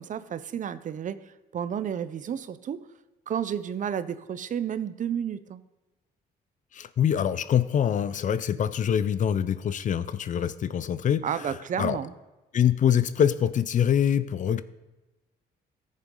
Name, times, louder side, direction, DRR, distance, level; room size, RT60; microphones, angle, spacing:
voice 1, 0.0-2.9 3.3-5.6 11.2-12.1, right 8 dB, 45° right, 14 dB, 0.6 m, -31 dB
voice 2, 6.7-12.0 12.5-14.6, left 9 dB, 45° left, 15 dB, 0.5 m, -25 dB
14.0 x 7.4 x 3.8 m, 1.1 s
cardioid pair, 85°, 18 cm